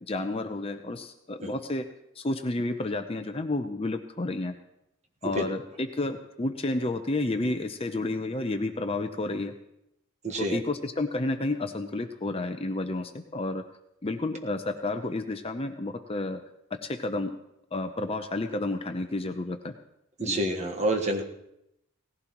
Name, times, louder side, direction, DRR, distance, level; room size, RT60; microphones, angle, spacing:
voice 1, 0.1-1.9 2.2-4.5 5.2-9.5 10.4-13.6 14.0-16.4 16.8-17.4 17.7-19.7 20.2-20.4, left 2 dB, 25° left, 7 dB, 0.6 m, -31 dB
voice 2, 10.2-10.6 20.2-21.2, right 1 dB, 30° right, 3 dB, 1.4 m, -28 dB
18.0 x 15.5 x 3.0 m, 0.83 s
head